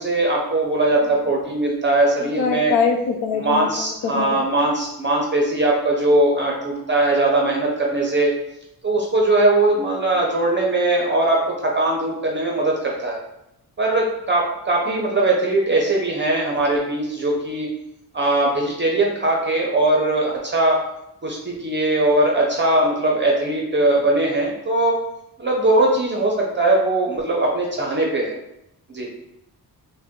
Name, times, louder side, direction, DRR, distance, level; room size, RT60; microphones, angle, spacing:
voice 1, 0.0-2.7 3.3-8.3 8.8-13.2 13.8-17.7 18.1-20.8 21.2-25.0 25.4-28.4 28.9-29.1, right 2 dB, 30° right, -1 dB, 0.6 m, -20 dB
voice 2, 2.2-4.4, left 5 dB, 75° left, 3 dB, 0.6 m, -24 dB
3.7 x 2.1 x 3.5 m, 0.83 s
wide cardioid pair, 120°, 38 cm